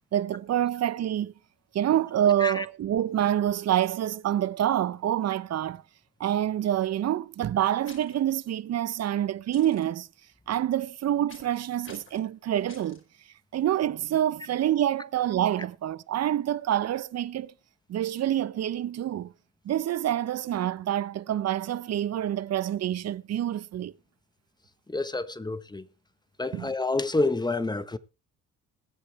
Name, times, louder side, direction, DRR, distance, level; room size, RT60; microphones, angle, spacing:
voice 1, 0.1-1.3 1.7-5.8 6.2-10.1 10.5-13.0 13.5-17.5 17.9-19.3 19.6-23.9 26.5-26.7, right 11 dB, 55° right, 0.8 m, -27 dB
sound 1, 7.8-8.2 9.5-9.8 11.3-11.6 11.8-12.2 12.7-13.0, left 4 dB, 40° left, 5.1 m, -49 dB
voice 2, 24.9-25.8 26.4-28.0, left 2 dB, 15° left, 1.1 m, -28 dB
20.5 x 8.2 x 3.3 m
cardioid pair, 90°, 30 cm